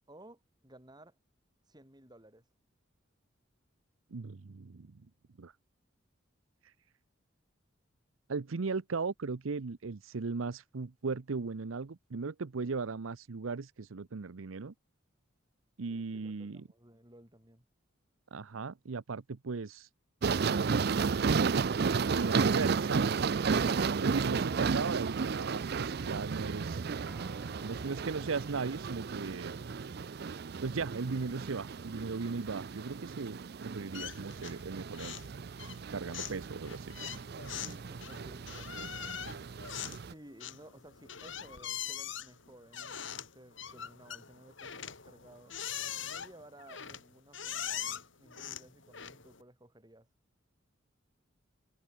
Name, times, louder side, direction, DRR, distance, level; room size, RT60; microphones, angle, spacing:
voice 1, 0.1-1.2 1.6-2.5 15.9-17.7 36.9-39.4 40.0-45.6 46.0-50.1, right 1 dB, 20° right, 4.2 m, -57 dB
voice 2, 4.1-5.0 5.4-5.5 8.3-14.7 15.8-16.6 18.3-19.9 20.4-20.7 21.2-23.5 24.0-26.8 27.6-29.6 30.6-35.1 35.9-36.9, right 4 dB, 90° right, 0.7 m, -37 dB
sound 1, 20.2-40.1, right 5 dB, 50° right, 0.5 m, -33 dB
Piano, 27.1-35.3, equal, 5° right, 6.1 m, -62 dB
sound 2, 33.9-34.7 34.9-35.3 35.6-49.4, left 9 dB, 70° left, 3.9 m, -42 dB
head